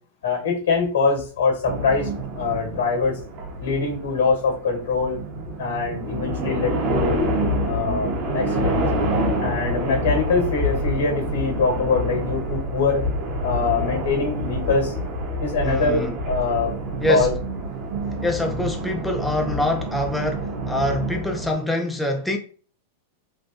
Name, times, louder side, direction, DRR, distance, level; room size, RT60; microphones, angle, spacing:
voice 1, 0.2-2.1 2.4-3.2 3.6-5.2 5.6-7.3 7.6-8.8 9.4-13.0 13.4-14.9 15.4-16.7 17.1-17.3, left 4 dB, 85° left, 1.6 m, -23 dB
sound 1, 1.7-21.5, equal, 45° right, 1.1 m, -27 dB
voice 2, 15.6-16.2 17.0-17.3 18.2-22.4, left 1 dB, 5° left, 0.4 m, -25 dB
3.5 x 2.6 x 2.6 m
hypercardioid pair, 135°, 0 cm